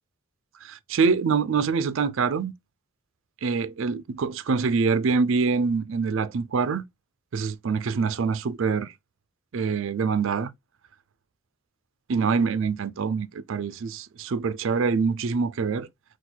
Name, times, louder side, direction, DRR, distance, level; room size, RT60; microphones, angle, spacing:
voice 1, 0.6-2.5 3.4-6.8 7.3-8.9 9.5-10.5 12.1-15.9, right 5 dB, 65° right, 0.4 m, -25 dB
3.9 x 2.3 x 4.4 m
head